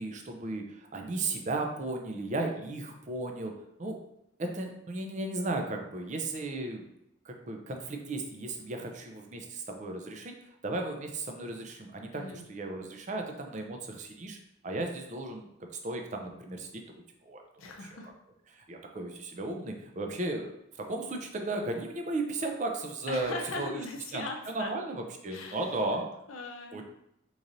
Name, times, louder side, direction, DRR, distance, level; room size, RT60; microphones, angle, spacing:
voice 1, 0.0-3.5 3.8-4.0 4.4-6.9 7.2-10.3 10.6-14.4 14.6-15.5 15.8-16.7 17.2-17.4 18.5-23.7 24.1-26.0 26.7-26.8, right 2 dB, 35° right, 3 dB, 0.4 m, -35 dB
voice 2, 12.1-12.4 17.6-18.1 23.1-24.8 25.3-25.8 26.3-26.8, left 2 dB, 85° left, 2 dB, 0.6 m, -39 dB
3.9 x 3.1 x 2.6 m, 0.80 s
head